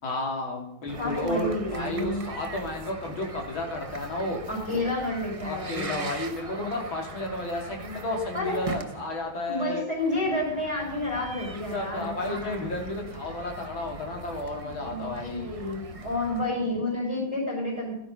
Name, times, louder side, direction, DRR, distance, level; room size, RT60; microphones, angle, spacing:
voice 1, 0.0-4.4 4.7-4.9 5.4-9.8 11.7-15.5, left 1 dB, 70° left, 1 dB, 3.7 m, -32 dB
sound 1, 0.9-16.5, right 3 dB, 40° right, 0.4 m, -41 dB
voice 2, 1.0-2.3 4.5-6.1 8.3-8.6 9.5-12.7 14.6-17.9, left 2 dB, 15° left, -2 dB, 4.6 m, -30 dB
16.5 x 11.0 x 5.6 m, 0.83 s
omnidirectional pair, 2.2 m